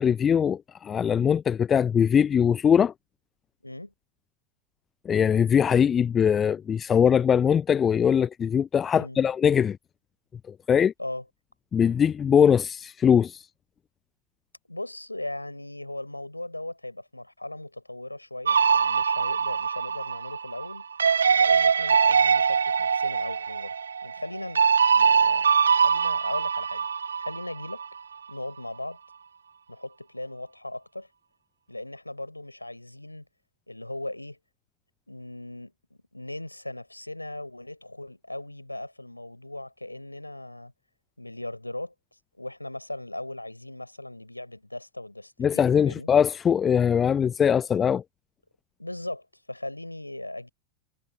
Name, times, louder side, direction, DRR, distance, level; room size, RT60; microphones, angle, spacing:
voice 1, 0.0-2.9 5.1-9.8 10.7-10.9 11.7-13.5 45.4-48.0, left 8 dB, 20° left, 0.5 m, -21 dB
voice 2, 3.6-3.9 8.9-9.2 11.0-11.2 14.7-20.8 21.4-23.7 24.0-24.6 24.9-26.9 27.2-27.8 28.3-29.0 29.7-31.1 31.7-33.3 33.7-34.4 35.1-40.7 41.2-41.9 42.4-46.1 48.8-50.5, left 1 dB, 85° left, 6.2 m, -38 dB
sound 1, 18.5-27.9, right 6 dB, 70° right, 0.4 m, -23 dB
figure-of-eight pair, 90°, 0 cm